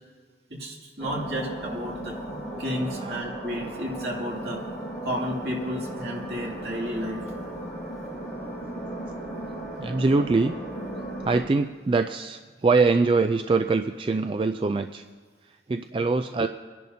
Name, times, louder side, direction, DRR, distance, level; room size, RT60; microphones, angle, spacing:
voice 1, 0.5-2.2 2.6-4.6 5.0-7.2, equal, 65° right, -2 dB, 2.5 m, -32 dB
sound 1, 1.0-11.4, right 1 dB, 5° right, 4.6 m, -36 dB
voice 2, 9.8-10.6 11.2-15.0 15.7-16.5, right 3 dB, 30° right, 7 dB, 0.3 m, -23 dB
24.5 x 10.5 x 2.7 m, 1.4 s
head